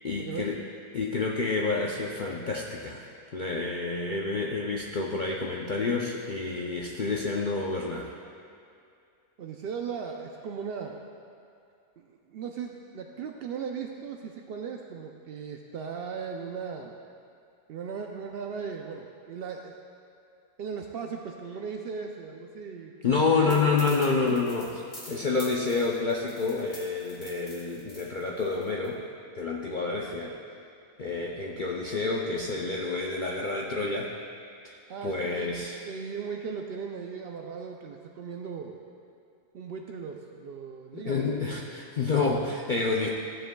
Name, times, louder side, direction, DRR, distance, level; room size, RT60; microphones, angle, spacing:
voice 1, 0.0-0.6 0.9-3.0 3.3-8.1 23.0-24.7 25.1-29.0 29.3-30.3 31.0-34.1 34.6-34.8 35.0-35.8 40.9-43.1, left 4 dB, 70° left, -2 dB, 0.4 m, -28 dB
voice 2, 9.4-11.0 12.0-17.0 17.7-19.8 20.6-23.7 24.2-24.4 34.9-35.6 35.8-38.8 39.5-41.6, right 6 dB, 75° right, 2 dB, 0.5 m, -37 dB
sound 1, 23.5-28.9, left 1 dB, 30° left, 1.5 m, -47 dB
15.0 x 7.6 x 2.2 m, 2.4 s
omnidirectional pair, 1.5 m